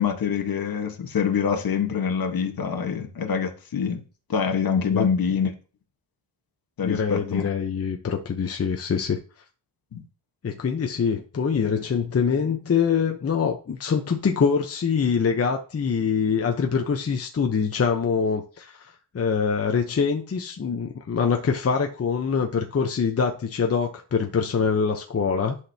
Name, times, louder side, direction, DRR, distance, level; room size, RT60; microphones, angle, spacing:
voice 1, 0.0-4.0 4.3-5.5 6.8-7.4 9.9-10.0, left 7 dB, 55° left, 1.4 m, -25 dB
voice 2, 6.8-9.2 10.4-25.6, left 6 dB, 35° left, 0.9 m, -24 dB
11.5 x 6.3 x 2.9 m
wide cardioid pair, 120°, 43 cm